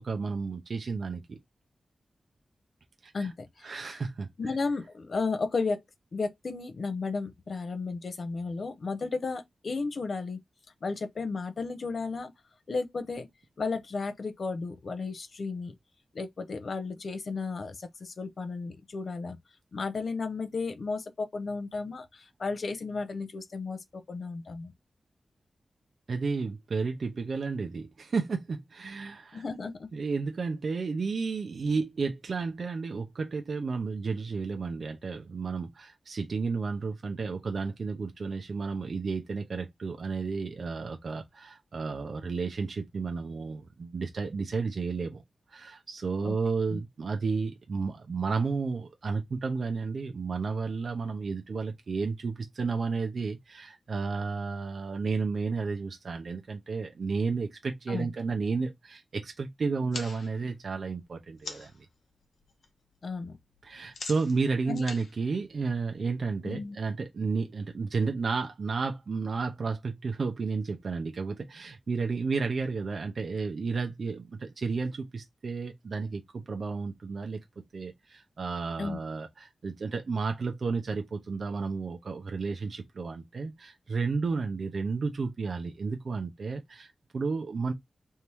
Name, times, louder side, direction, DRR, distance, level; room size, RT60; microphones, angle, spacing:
voice 1, 0.0-1.4 3.0-3.3 3.6-4.3 26.1-29.4 29.9-45.2 45.5-61.9 63.6-77.4 77.7-87.7, right 4 dB, 60° right, 0.7 m, -32 dB
voice 2, 3.1-4.0 4.4-5.8 6.1-10.4 10.8-12.3 12.7-13.3 13.6-15.7 16.1-19.4 19.7-24.7 29.3-29.9 46.2-46.4 46.7-46.8 57.9-58.1 63.0-63.4 64.7-64.8 66.4-66.8 78.8-79.0, left 4 dB, 55° left, 0.7 m, -34 dB
sound 1, 59.8-61.8 62.2-62.7 62.9-66.2, left 4 dB, 90° left, 1.0 m, -44 dB
3.5 x 2.8 x 4.5 m
wide cardioid pair, 140°, 0 cm